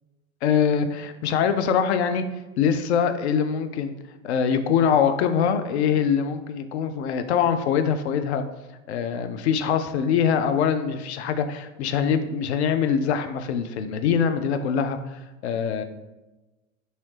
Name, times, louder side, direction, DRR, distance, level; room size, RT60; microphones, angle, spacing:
voice 1, 0.4-2.2 2.6-3.9 4.2-8.4 8.9-15.8, left 7 dB, 55° left, 9 dB, 0.5 m, -23 dB
4.0 x 2.8 x 3.1 m, 1.1 s
figure-of-eight pair, 95°, 41 cm